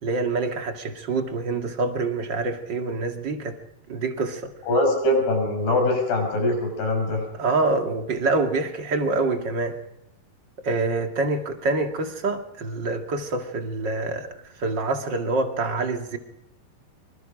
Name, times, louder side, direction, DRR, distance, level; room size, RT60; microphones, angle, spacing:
voice 1, 0.0-3.6 3.9-4.5 7.4-9.8 10.6-14.3 14.6-16.2, right 3 dB, 35° right, 5 dB, 2.1 m, -26 dB
voice 2, 4.7-7.2, left 1 dB, 85° left, 4 dB, 8.0 m, -22 dB
26.0 x 24.0 x 5.1 m, 0.82 s
omnidirectional pair, 4.4 m